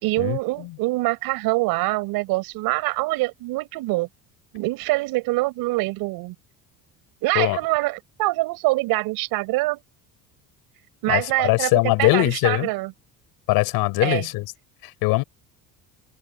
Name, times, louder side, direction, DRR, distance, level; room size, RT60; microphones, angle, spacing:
voice 1, 0.0-4.1 4.5-6.3 7.2-9.8 11.0-12.9 14.0-14.3, right 21 dB, 85° right, 4.8 m, -24 dB
voice 2, 11.1-12.7 13.5-14.5 15.0-15.2, left 21 dB, 90° left, 4.5 m, -21 dB
cardioid pair, 165°, 35 cm